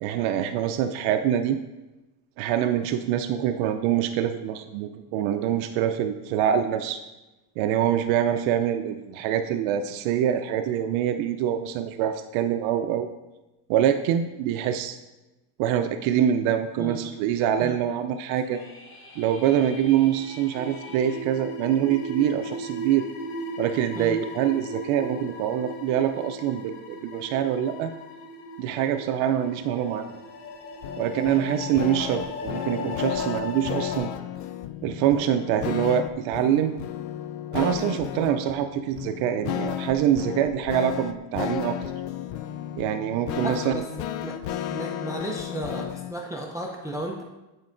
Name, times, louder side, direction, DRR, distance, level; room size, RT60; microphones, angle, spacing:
voice 1, 0.0-1.6 2.4-7.0 7.6-13.1 13.7-15.0 15.6-18.6 19.2-23.1 23.6-27.9 28.6-30.1 31.0-34.1 34.8-36.7 37.5-41.8 42.8-43.9, right 10 dB, 70° right, 8 dB, 0.5 m, -25 dB
sound 1, 18.3-21.2, left 2 dB, 25° left, 0.7 m, -47 dB
sound 2, 19.8-34.0, left 1 dB, 55° left, 1.2 m, -37 dB
sound 3, 30.8-46.1, left 11 dB, 75° left, 0.6 m, -33 dB
voice 2, 43.4-43.8 44.2-44.4 44.7-47.2, right 1 dB, 10° right, 1 dB, 0.3 m, -33 dB
9.5 x 4.6 x 2.5 m, 1.1 s
cardioid pair, 115°, 50 cm